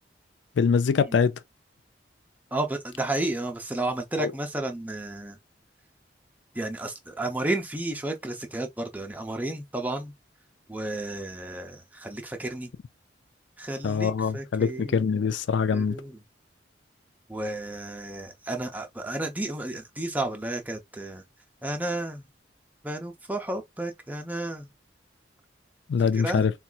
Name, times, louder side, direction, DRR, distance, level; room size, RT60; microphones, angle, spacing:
voice 1, 0.6-1.3 4.2-4.3 13.8-16.0 25.9-26.5, left 6 dB, 85° left, 0.4 m, -23 dB
voice 2, 2.5-5.4 6.5-10.1 10.7-12.7 13.6-15.2 15.7-16.2 17.3-21.2 21.6-22.3 22.8-24.7 26.1-26.5, right 2 dB, 10° right, 0.6 m, -32 dB
4.1 x 2.3 x 2.3 m
head